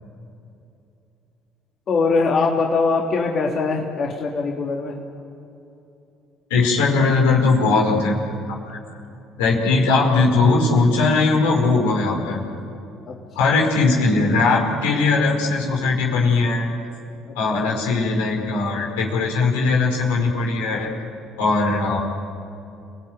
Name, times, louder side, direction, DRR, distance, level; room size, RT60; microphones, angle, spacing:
voice 1, 1.9-5.0 13.1-13.6 17.5-17.8, left 4 dB, 50° left, -1 dB, 3.5 m, -22 dB
voice 2, 6.5-8.2 8.5-8.8 9.4-12.4 13.3-16.7 17.3-20.9 21.4-22.0, left 3 dB, 75° left, 0 dB, 5.0 m, -19 dB
30.0 x 18.5 x 9.5 m, 2.8 s
hypercardioid pair, 55°, 0 cm